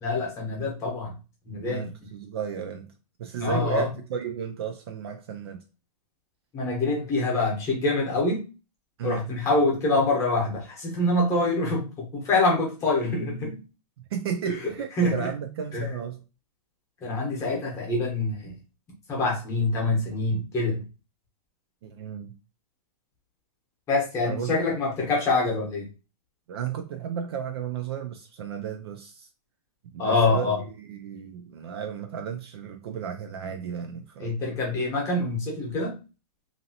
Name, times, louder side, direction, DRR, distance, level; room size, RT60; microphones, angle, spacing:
voice 1, 0.0-1.1 1.4-1.9 3.4-3.9 6.5-8.4 9.0-13.6 14.4-14.7 15.0-15.3 15.7-15.9 17.0-18.5 19.1-20.8 23.9-25.9 30.0-30.6 34.2-36.0, left 2 dB, 15° left, 0.9 m, -25 dB
voice 2, 1.7-2.9 3.2-5.6 9.0-9.2 14.1-16.2 21.8-22.3 24.2-24.8 26.5-29.3 29.8-34.4, right 8 dB, 40° right, 0.4 m, -34 dB
2.9 x 2.7 x 2.8 m
hypercardioid pair, 165°, 20 cm